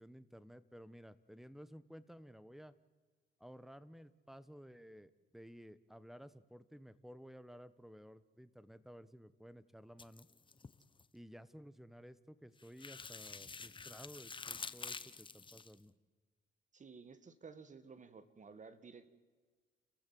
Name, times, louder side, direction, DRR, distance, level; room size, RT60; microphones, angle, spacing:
voice 1, 0.0-2.7 3.4-10.3 11.1-15.9, equal, ahead, 15 dB, 1.2 m, -55 dB
sound 1, 10.0-11.0 12.6-15.7, left 4 dB, 25° left, 1.0 m, -48 dB
voice 2, 16.7-19.1, right 5 dB, 40° right, 12 dB, 1.8 m, -54 dB
29.5 x 15.0 x 7.7 m, 1.4 s
cardioid pair, 90°, 20 cm